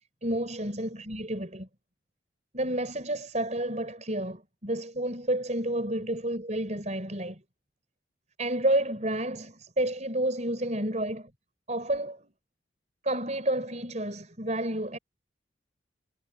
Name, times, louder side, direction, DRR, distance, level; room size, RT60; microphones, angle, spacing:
voice 1, 0.2-1.7 2.5-7.4 8.4-11.3 11.7-12.3 13.0-15.0, right 1 dB, 35° right, 6.1 m, -30 dB
head